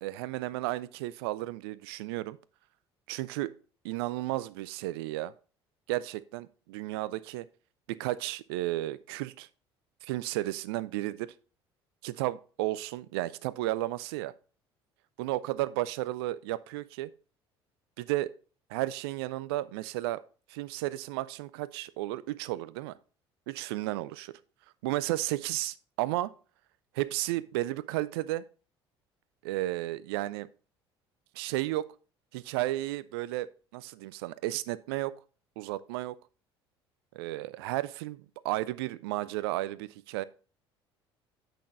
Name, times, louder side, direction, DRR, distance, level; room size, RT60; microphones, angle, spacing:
voice 1, 0.0-2.4 3.1-3.5 3.8-5.3 5.9-7.5 7.9-9.5 10.0-11.3 12.0-14.3 15.2-17.1 18.0-18.4 18.7-20.2 20.5-23.0 23.5-24.3 24.8-26.3 26.9-28.4 29.4-30.5 31.3-31.9 32.3-35.1 35.6-36.2 37.1-40.2, right 16 dB, 65° right, 0.5 m, -33 dB
8.3 x 6.1 x 3.9 m
figure-of-eight pair, 60°, 14 cm